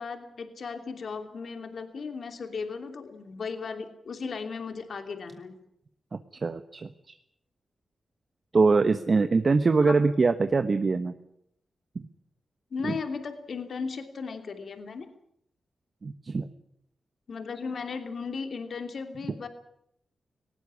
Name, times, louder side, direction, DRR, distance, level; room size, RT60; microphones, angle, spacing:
voice 1, 0.0-5.5 9.8-9.9 12.7-15.1 17.3-19.5, left 5 dB, 65° left, 7 dB, 2.9 m, -36 dB
voice 2, 6.1-7.1 8.5-11.1 11.9-12.1 12.8-12.9 16.0-16.5, right 4 dB, 50° right, 9 dB, 1.2 m, -24 dB
19.0 x 18.0 x 9.9 m, 0.73 s
cardioid pair, 65°, 0 cm